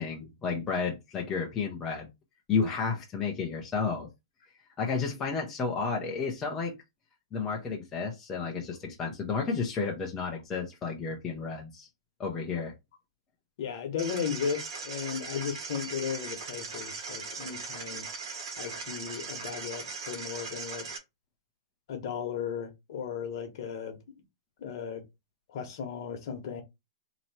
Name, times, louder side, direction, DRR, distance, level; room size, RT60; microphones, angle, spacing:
voice 1, 0.0-2.1 2.5-4.1 4.8-6.8 7.3-11.9 12.2-12.7, left 5 dB, 15° left, 0.7 m, -32 dB
voice 2, 13.6-18.1 18.6-20.9 21.9-24.2 24.6-25.0 25.5-26.6, left 7 dB, 50° left, 1.2 m, -35 dB
sound 1, 14.0-21.0, right 4 dB, 55° right, 1.4 m, -39 dB
3.0 x 3.0 x 4.2 m
hypercardioid pair, 165°, 3 cm